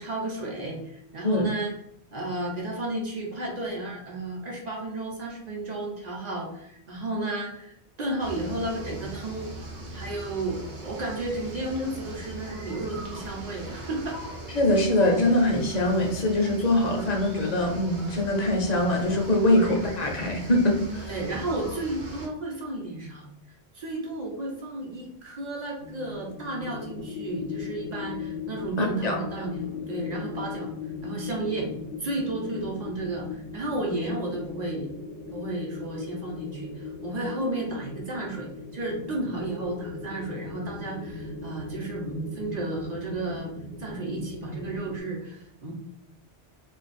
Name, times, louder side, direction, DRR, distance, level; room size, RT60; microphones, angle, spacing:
voice 1, 0.0-1.8 2.1-9.5 9.9-14.2 21.1-23.3 23.7-30.7 31.0-31.7 32.0-34.9 35.3-43.5 43.8-45.7, right 2 dB, 45° right, -1 dB, 0.8 m, -33 dB
sound 1, 8.2-22.3, right 1 dB, 75° right, 1.1 m, -40 dB
voice 2, 14.5-21.1 28.8-29.2, left 1 dB, 45° left, 1 dB, 0.6 m, -23 dB
sound 2, 25.8-45.0, left 4 dB, 75° left, 0.8 m, -38 dB
2.5 x 2.3 x 4.0 m, 0.76 s
omnidirectional pair, 1.1 m